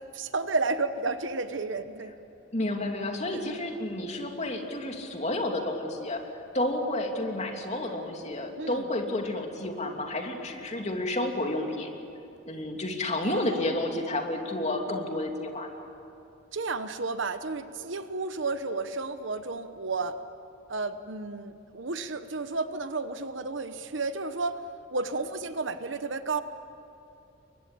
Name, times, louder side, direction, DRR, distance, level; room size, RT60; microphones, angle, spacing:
voice 1, 0.1-2.1 3.3-3.6 8.6-8.8 13.2-14.0 16.5-20.2 20.7-24.6 24.9-26.4, right 3 dB, 65° right, 10 dB, 1.1 m, -32 dB
voice 2, 2.5-6.2 6.5-11.9 12.4-15.7, left 1 dB, 35° left, 2 dB, 3.0 m, -31 dB
30.0 x 23.0 x 8.6 m, 2.8 s
head